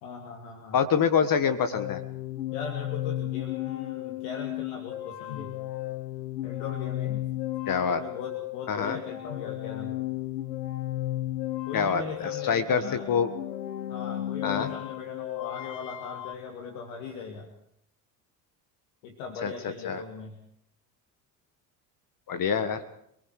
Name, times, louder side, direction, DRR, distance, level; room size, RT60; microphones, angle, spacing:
voice 1, 0.0-0.8 2.5-5.5 6.4-7.3 7.9-10.0 11.7-13.1 13.9-17.5 19.0-20.4, left 5 dB, 70° left, 3 dB, 3.1 m, -39 dB
voice 2, 0.7-2.0 7.7-8.0 8.7-9.0 11.7-12.8 13.1-13.3 14.4-14.7 19.4-19.5 19.9-20.0 22.3-22.8, left 7 dB, 40° left, 10 dB, 1.7 m, -25 dB
sound 1, 1.7-16.3, left 15 dB, 90° left, 0.9 m, -34 dB
27.5 x 19.5 x 4.9 m, 0.71 s
hypercardioid pair, 70°, 49 cm